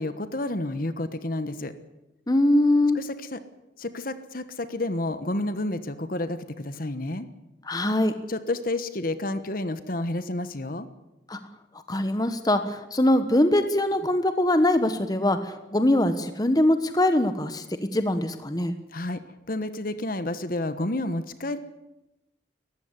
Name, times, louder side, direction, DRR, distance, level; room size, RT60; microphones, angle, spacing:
voice 1, 0.0-1.7 2.9-3.4 3.8-7.3 8.3-10.9 18.9-19.2 19.5-21.6, left 2 dB, 50° left, 11 dB, 1.2 m, -30 dB
voice 2, 2.3-3.0 7.7-8.1 11.3-11.4 11.9-17.6 17.9-18.7, left 1 dB, 20° left, 9 dB, 1.2 m, -22 dB
20.0 x 15.0 x 9.7 m, 0.95 s
head